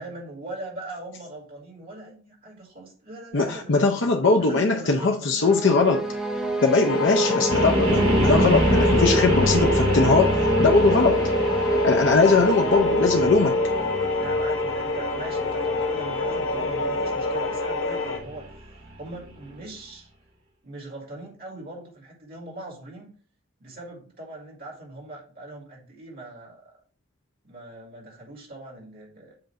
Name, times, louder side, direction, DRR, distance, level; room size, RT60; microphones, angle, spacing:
voice 1, 0.0-3.8 4.4-5.7 7.2-7.4 12.3-12.8 13.7-18.5 19.0-20.1 20.6-23.1 23.6-26.7 27.4-29.3, right 2 dB, 45° right, -1 dB, 2.0 m, -40 dB
voice 2, 3.3-6.0 6.6-11.2 11.8-13.6, left 4 dB, 60° left, 3 dB, 0.6 m, -20 dB
sound 1, 5.4-13.8, right 2 dB, ahead, 0.7 m, -27 dB
sound 2, 6.9-18.2, left 3 dB, 85° left, 1.1 m, -26 dB
sound 3, 7.5-19.5, right 1 dB, 80° right, 2.1 m, -28 dB
7.7 x 2.6 x 5.6 m, 0.43 s
head